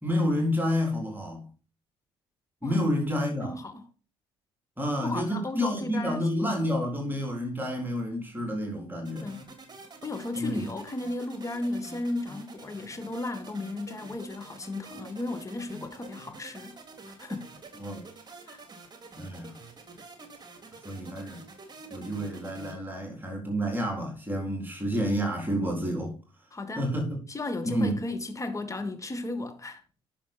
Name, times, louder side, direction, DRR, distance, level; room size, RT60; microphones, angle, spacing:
voice 1, 0.0-1.5 2.6-3.5 4.8-9.3 10.4-10.7 17.8-18.0 19.2-19.5 20.8-21.4 21.9-26.2 26.8-27.2 27.6-28.0, equal, 15° right, 3.9 m, -29 dB
voice 2, 3.4-3.8 5.0-6.6 9.2-9.5 10.0-16.8 17.1-17.6 18.5-18.6 26.5-26.9 27.3-29.8, left 2 dB, 20° left, 1.9 m, -35 dB
sound 1, 9.0-22.7, right 3 dB, 30° right, 2.9 m, -48 dB
10.0 x 6.7 x 4.5 m
hypercardioid pair, 55°, 14 cm